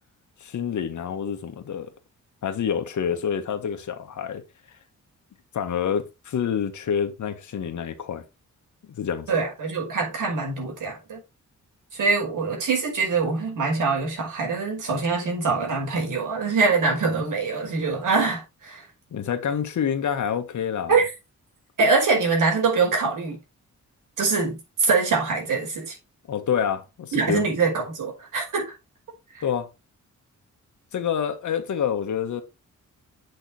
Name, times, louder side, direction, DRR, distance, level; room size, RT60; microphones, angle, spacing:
voice 1, 0.4-1.9 2.4-4.4 5.5-8.2 8.9-9.3 19.1-20.9 26.3-27.4 29.4-29.7 30.9-32.4, left 8 dB, 70° left, 1.7 m, -27 dB
voice 2, 9.3-11.2 11.9-18.8 20.9-21.1 21.8-23.4 24.2-26.0 27.1-28.7 29.3-29.4, right 4 dB, 80° right, 5.3 m, -24 dB
8.2 x 6.4 x 4.5 m
wide cardioid pair, 150°, 31 cm